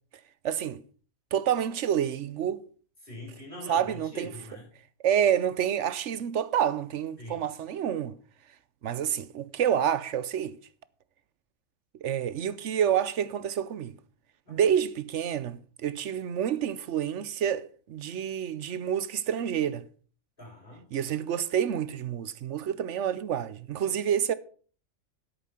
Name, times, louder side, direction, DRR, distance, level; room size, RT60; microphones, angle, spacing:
voice 1, 0.4-0.8 1.3-2.6 3.7-4.3 5.0-8.2 8.8-10.6 12.0-14.0 14.5-19.9 20.9-24.3, right 9 dB, 65° right, 1.0 m, -28 dB
voice 2, 3.0-4.7 7.2-7.5 14.5-14.6 20.4-20.8, left 1 dB, 40° left, 7.1 m, -43 dB
11.0 x 8.4 x 5.7 m
omnidirectional pair, 1.4 m